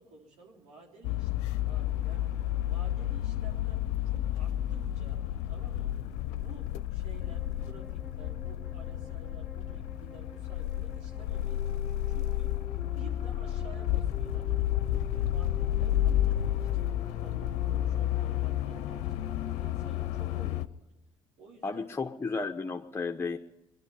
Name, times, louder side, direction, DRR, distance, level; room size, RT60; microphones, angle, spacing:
voice 1, 0.0-6.0 6.3-12.6 12.9-14.5 15.0-19.3 19.6-20.9 21.4-21.9, right 4 dB, 70° right, -1 dB, 3.6 m, -53 dB
sound 1, 1.0-20.7, left 13 dB, 75° left, 0.6 m, -31 dB
sound 2, 7.2-20.6, left 2 dB, 5° right, 3.0 m, -47 dB
voice 2, 21.6-23.4, left 4 dB, 20° left, 2 dB, 1.1 m, -33 dB
22.5 x 11.0 x 5.6 m, 0.98 s
hypercardioid pair, 65°, 12 cm